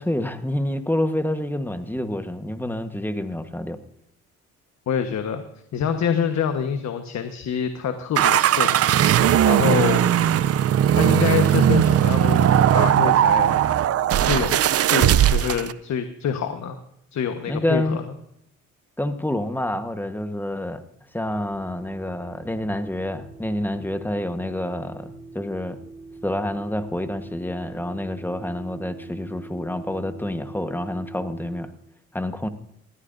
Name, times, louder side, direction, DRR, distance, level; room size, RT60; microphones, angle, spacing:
voice 1, 0.0-3.8 17.5-18.0 19.0-20.8 21.1-25.8 26.2-31.7 32.1-32.5, left 1 dB, 5° left, 9 dB, 1.2 m, -28 dB
voice 2, 4.9-5.4 5.7-8.8 9.4-10.1 10.9-13.6 14.2-14.6 14.9-16.8 17.1-18.0, left 7 dB, 65° left, 7 dB, 1.3 m, -26 dB
sound 1, 8.2-15.7, right 10 dB, 50° right, 0.6 m, -18 dB
sound 2, 21.2-31.7, right 3 dB, 15° right, 2.8 m, -43 dB
20.0 x 14.0 x 2.6 m, 0.76 s
cardioid pair, 90°, 30 cm